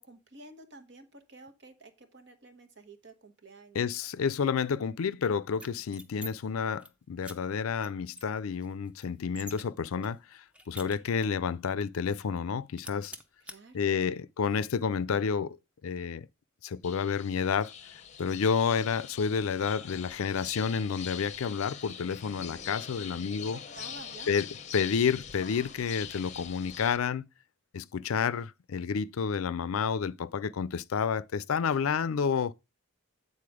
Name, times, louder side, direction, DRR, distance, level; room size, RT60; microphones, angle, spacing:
voice 1, 0.0-3.9 13.4-14.2 23.5-24.3, right 2 dB, 55° right, 1.2 m, -51 dB
voice 2, 3.7-10.2 10.7-13.1 13.7-15.6 15.8-16.3 16.6-17.7 18.2-23.6 24.3-24.5 24.7-27.2 27.7-32.5, left 6 dB, 90° left, 0.4 m, -30 dB
sound 1, 5.6-6.3 6.6-6.9 7.2-7.4 7.8-7.9 8.2-9.6 10.0-11.4 11.8-11.9 12.2-12.5 12.8-13.6, equal, 5° right, 0.7 m, -46 dB
sound 2, 16.8-27.0, left 8 dB, 35° left, 0.7 m, -43 dB
8.7 x 4.1 x 4.9 m
head